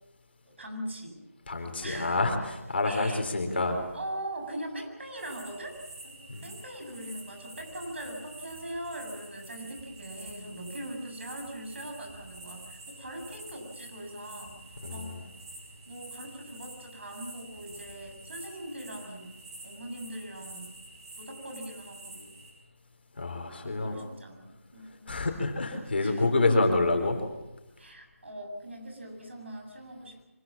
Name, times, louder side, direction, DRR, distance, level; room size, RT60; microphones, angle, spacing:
voice 1, 0.4-1.2 1.8-2.2 2.8-3.5 3.9-5.8 6.0-14.5 14.9-15.2 15.9-19.3 19.6-20.7 21.2-22.3 23.6-25.1 26.0-26.6 27.8-30.2, right 1 dB, 55° right, 3 dB, 7.2 m, -41 dB
voice 2, 1.5-3.8 6.3-6.5 14.8-15.3 23.1-24.0 25.1-27.2, left 2 dB, 45° left, 5 dB, 4.1 m, -27 dB
sound 1, 5.2-22.5, right 2 dB, 20° right, 8.0 m, -48 dB
25.0 x 20.0 x 7.4 m, 1.0 s
figure-of-eight pair, 160°, 8 cm